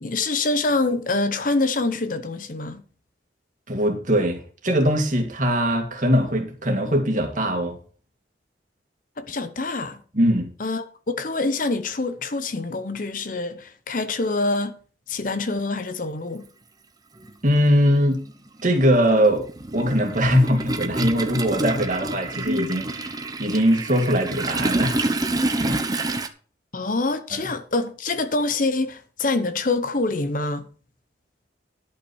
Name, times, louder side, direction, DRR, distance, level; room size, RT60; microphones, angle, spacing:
voice 1, 0.0-2.8 9.2-10.0 10.6-14.8 15.1-16.4 26.7-30.6, left 3 dB, 45° left, 0.8 m, -25 dB
voice 2, 3.7-7.8 10.1-10.5 17.4-18.2 18.6-19.4 19.7-23.1 23.4-25.0 25.6-26.1 27.3-27.4, equal, 45° right, 2.3 m, -21 dB
Toilet flush, 15.8-15.9 17.2-17.3 17.7-26.3, right 2 dB, 20° right, 0.8 m, -28 dB
11.0 x 5.8 x 6.3 m
head